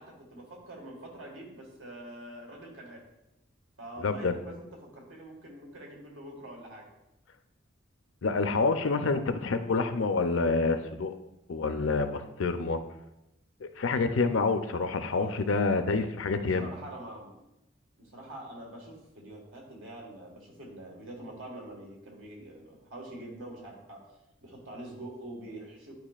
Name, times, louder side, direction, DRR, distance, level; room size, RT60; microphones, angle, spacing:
voice 1, 0.0-3.0 3.8-6.9 14.7-15.8 16.5-17.4 18.0-24.0 24.4-25.9, right 1 dB, 85° right, -1 dB, 1.7 m, -45 dB
voice 2, 4.0-4.3 8.2-11.2 11.5-12.8 13.6-16.7, left 4 dB, 80° left, 9 dB, 0.6 m, -27 dB
10.5 x 4.7 x 2.4 m, 0.90 s
head